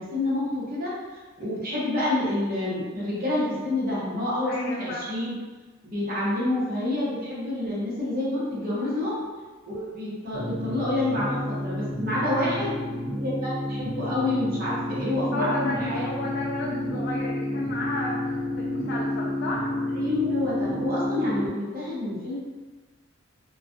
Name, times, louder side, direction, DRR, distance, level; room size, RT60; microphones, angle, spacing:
voice 1, 0.0-5.4 5.8-9.2 9.6-12.7 13.1-16.1 19.9-22.4, left 1 dB, 45° right, -8 dB, 0.9 m, -28 dB
voice 2, 4.4-5.1 8.7-9.1 12.2-12.7 15.3-19.7, left 1 dB, 55° left, -3 dB, 0.3 m, -33 dB
sound 1, 10.3-21.5, left 1 dB, ahead, 0.7 m, -30 dB
2.4 x 2.3 x 2.5 m, 1.3 s
head